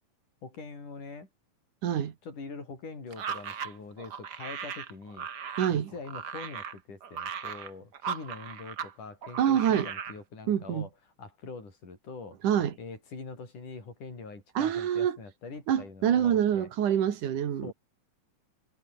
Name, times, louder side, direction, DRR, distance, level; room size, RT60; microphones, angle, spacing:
voice 1, 0.4-1.3 2.2-5.3 5.7-10.9 11.2-12.4 12.8-16.7 17.6-17.7, left 4 dB, 70° left, 8.5 m, -43 dB
voice 2, 1.8-2.1 5.6-5.9 9.4-9.9 10.5-10.9 12.4-12.7 14.6-15.2 15.7-17.7, right 9 dB, 70° right, 3.6 m, -26 dB
sound 1, 3.1-8.9 9.2-10.2, right 7 dB, 45° right, 1.4 m, -38 dB
omnidirectional pair, 3.7 m